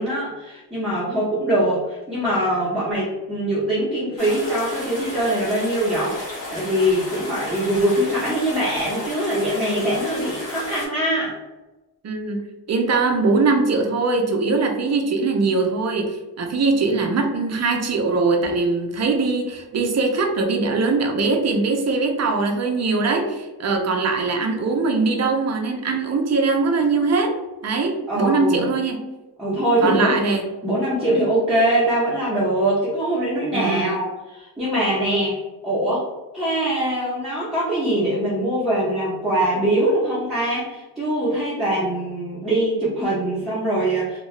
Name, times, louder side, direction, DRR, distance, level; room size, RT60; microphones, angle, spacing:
voice 1, 0.0-6.2 6.5-11.4 28.1-28.7 29.4-30.2 30.6-36.1 36.3-44.2, right 1 dB, ahead, -10 dB, 0.6 m, -22 dB
sound 1, 4.2-10.9, left 1 dB, 50° left, 1.4 m, -33 dB
voice 2, 12.0-27.3 27.6-29.0 29.8-30.4 33.5-34.0, right 3 dB, 40° right, 3 dB, 0.4 m, -21 dB
2.7 x 2.2 x 3.1 m, 1.1 s
wide cardioid pair, 170°, 41 cm